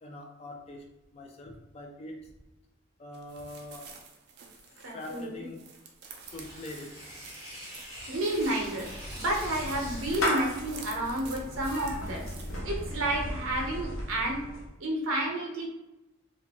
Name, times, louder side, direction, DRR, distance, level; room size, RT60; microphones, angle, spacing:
voice 1, 0.0-2.3 3.0-4.0 4.9-5.7 6.3-7.0, left 1 dB, 30° left, 2 dB, 0.3 m, -44 dB
sound 1, 3.1-12.6, right 5 dB, 50° right, 0.4 m, -49 dB
voice 2, 4.8-5.3 8.1-8.9 9.1-12.3 12.6-14.4 14.8-15.7, right 1 dB, 85° right, 0 dB, 0.7 m, -30 dB
Tearing, 6.2-11.0, equal, 15° right, 1.1 m, -44 dB
Clapping / Meow, 8.3-14.7, left 1 dB, 80° left, 0.6 m, -36 dB
2.5 x 2.1 x 2.9 m, 0.98 s
head